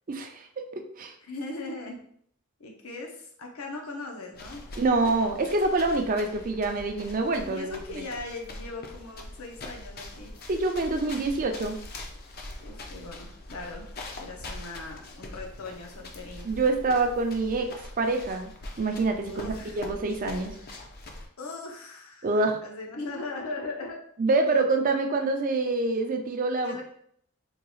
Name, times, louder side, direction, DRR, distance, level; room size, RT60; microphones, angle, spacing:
voice 1, 0.1-0.5 0.7-1.1 4.8-7.7 10.5-11.8 16.4-18.5 18.8-20.5 22.2-22.6 24.2-26.8, right 3 dB, 40° right, 5 dB, 0.4 m, -26 dB
voice 2, 1.2-2.0 2.6-4.7 7.5-10.3 12.6-16.6 19.2-19.9 21.4-24.0 26.6-26.8, left 3 dB, 80° left, 0 dB, 0.8 m, -39 dB
sound 1, 4.3-21.3, left 2 dB, 45° left, 0.5 m, -43 dB
3.7 x 2.3 x 3.0 m, 0.64 s
head